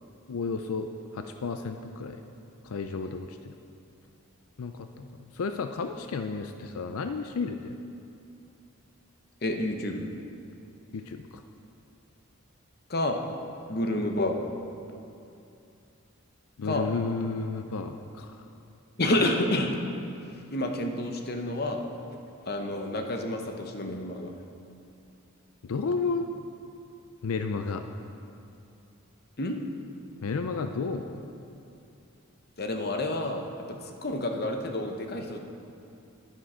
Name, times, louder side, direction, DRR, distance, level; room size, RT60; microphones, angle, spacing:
voice 1, 0.3-2.2 2.6-3.5 4.6-7.8 10.9-11.4 16.6-18.4 25.6-26.3 27.2-27.9 30.2-31.2, left 4 dB, 85° left, 7 dB, 0.5 m, -32 dB
voice 2, 9.4-10.1 12.9-13.2 13.7-14.5 16.6-16.9 19.0-19.8 20.3-21.8 22.4-24.3 29.4-29.6 32.6-35.4, left 1 dB, 45° left, 4 dB, 0.9 m, -29 dB
10.5 x 10.0 x 4.9 m, 2.6 s
head